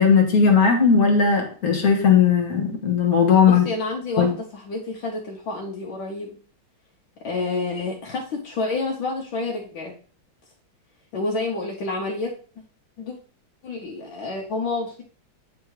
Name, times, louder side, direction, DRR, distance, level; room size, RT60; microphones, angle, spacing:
voice 1, 0.0-3.6 4.2-4.3, left 6 dB, 50° left, 3 dB, 1.8 m, -17 dB
voice 2, 3.4-6.4 7.2-9.9 11.1-12.3 13.0-13.2 13.6-15.0, left 3 dB, 75° left, -1 dB, 1.8 m, -29 dB
8.8 x 3.7 x 4.8 m, 0.42 s
omnidirectional pair, 2.2 m